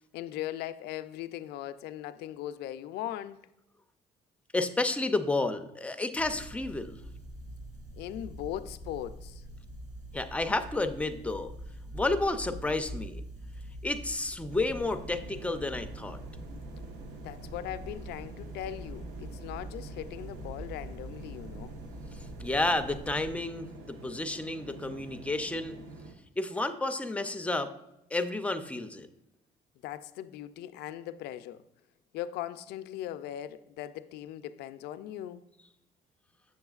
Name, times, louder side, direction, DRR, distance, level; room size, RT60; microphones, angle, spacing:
voice 1, 0.1-3.4 8.0-9.4 17.2-21.7 29.8-31.6 32.1-35.4, left 12 dB, 80° left, 0.4 m, -39 dB
voice 2, 4.5-7.0 10.1-11.5 11.9-13.2 13.8-16.2 22.4-25.8 26.4-27.7 28.1-29.1, left 2 dB, 10° left, 0.4 m, -31 dB
sound 1, 6.2-23.3, right 1 dB, 45° right, 2.2 m, -44 dB
sound 2, 14.5-26.1, right 2 dB, 80° right, 0.9 m, -47 dB
7.2 x 6.9 x 2.4 m
cardioid pair, 110°, 17 cm